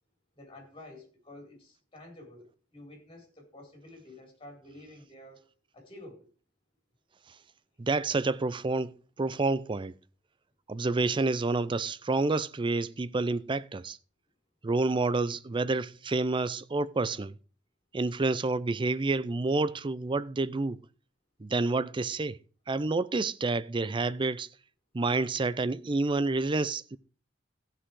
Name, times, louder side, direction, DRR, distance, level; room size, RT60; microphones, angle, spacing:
voice 1, 0.3-5.4 5.7-6.3, left 1 dB, 30° left, 4.6 m, -50 dB
voice 2, 7.8-8.9 9.2-9.9 10.7-14.0 14.6-17.4 17.9-20.8 21.4-22.4 22.7-24.5 24.9-27.0, right 3 dB, 25° right, 0.5 m, -29 dB
15.5 x 6.3 x 4.7 m
head